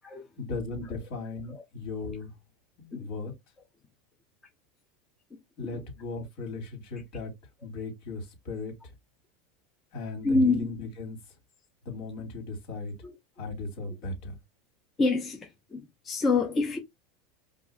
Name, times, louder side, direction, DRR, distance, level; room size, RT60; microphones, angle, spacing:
voice 1, 0.4-2.3 2.8-3.3 5.6-7.3 7.6-8.9 9.9-11.2 11.8-12.9 13.4-14.4, left 3 dB, 60° left, 2.6 m, -37 dB
voice 2, 10.2-10.7 13.0-13.1 15.0-16.8, left 3 dB, 20° left, 0.9 m, -26 dB
5.4 x 2.7 x 2.6 m
supercardioid pair, 150°, 0 cm